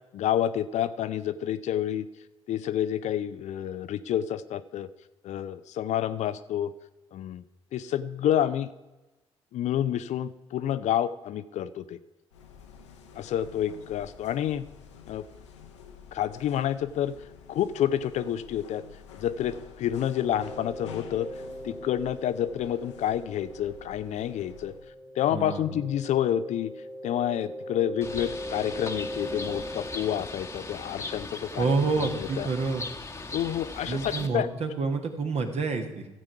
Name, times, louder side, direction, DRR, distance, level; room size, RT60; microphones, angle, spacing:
voice 1, 0.1-2.0 2.5-4.9 5.2-6.7 7.1-7.4 7.7-8.7 9.5-12.0 13.2-14.6 15.1-15.3 16.1-17.1 17.5-18.8 19.1-21.3 21.6-24.7 25.2-26.7 27.0-31.7 32.4-32.5 33.3-34.5, left 10 dB, 50° left, 13 dB, 0.5 m, -29 dB
sound 1, 12.3-24.9, left 6 dB, 80° left, 1.0 m, -49 dB
sound 2, 20.0-31.6, equal, 10° right, 1.9 m, -41 dB
voice 2, 25.3-25.8 31.6-32.9 33.8-36.1, right 4 dB, 45° right, 5 dB, 1.6 m, -28 dB
Bird, 28.0-34.3, left 3 dB, 20° left, 1.2 m, -39 dB
15.0 x 7.6 x 4.7 m, 1.1 s
figure-of-eight pair, 45°, 15 cm